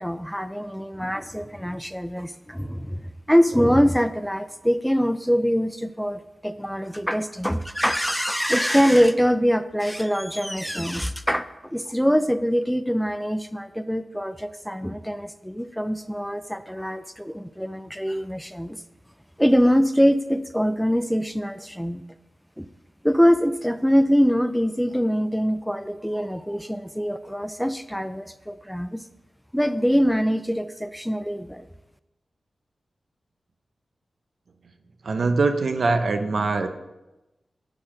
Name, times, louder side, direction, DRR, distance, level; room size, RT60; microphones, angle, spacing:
voice 1, 0.0-18.8 19.4-22.0 22.6-22.7 23.0-29.0 29.5-31.7, equal, ahead, 12 dB, 0.3 m, -23 dB
voice 2, 35.0-36.7, right 3 dB, 70° right, 8 dB, 0.7 m, -22 dB
8.8 x 4.0 x 6.1 m, 1.0 s
wide cardioid pair, 75°, 0 cm